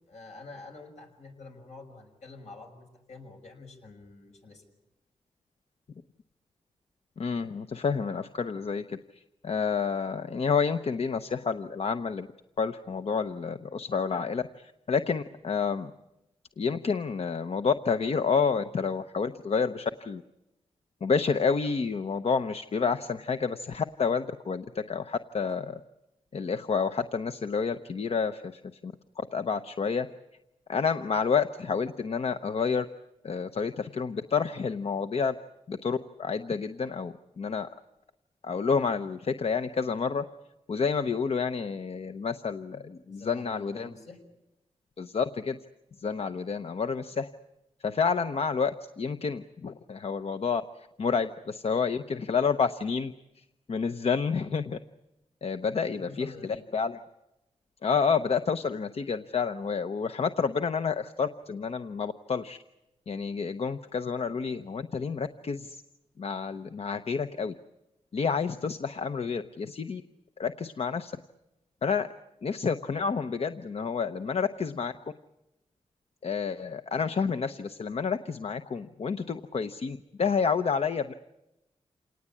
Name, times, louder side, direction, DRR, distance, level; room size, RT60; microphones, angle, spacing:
voice 1, 0.1-4.6 43.1-44.2 55.8-56.7, left 3 dB, 80° left, 3 dB, 5.9 m, -47 dB
voice 2, 7.2-12.3 12.6-15.9 16.6-20.2 21.0-25.8 26.3-30.1 30.7-32.9 33.2-35.4 35.7-37.7 38.4-40.2 40.7-43.9 45.0-45.6 46.0-47.3 47.8-48.7 49.0-54.8 55.4-56.3 56.7-57.0 57.8-62.6 63.1-65.8 66.2-67.5 68.1-70.0 70.4-71.1 71.8-72.1 72.4-74.9 76.2-81.1, left 5 dB, 60° left, 9 dB, 0.8 m, -29 dB
27.5 x 19.0 x 8.6 m, 0.92 s
wide cardioid pair, 95°, 12 cm